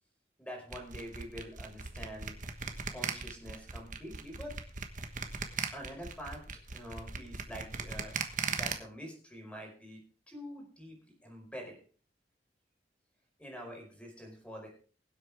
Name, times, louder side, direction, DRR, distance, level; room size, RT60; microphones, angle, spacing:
voice 1, 0.4-2.4 2.9-4.5 5.7-6.4 6.7-8.1 8.4-10.0 10.3-11.8 13.4-14.7, equal, 5° left, 0 dB, 4.8 m, -46 dB
sound 1, 0.7-8.7, right 5 dB, 50° right, 1.3 m, -38 dB
23.0 x 8.0 x 3.6 m, 0.40 s
head